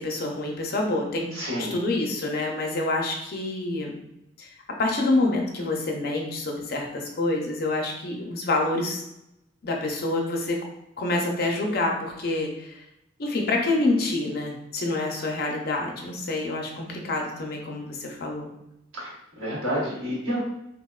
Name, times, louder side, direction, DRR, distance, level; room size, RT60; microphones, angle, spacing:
voice 1, 0.0-1.3 1.7-3.9 4.4-4.5 4.8-9.0 9.6-10.6 11.0-12.8 13.2-18.5, left 2 dB, 50° left, 1 dB, 0.5 m, -27 dB
voice 2, 1.3-1.8 18.9-20.4, equal, 75° right, -6 dB, 1.2 m, -29 dB
3.4 x 2.1 x 2.3 m, 0.83 s
head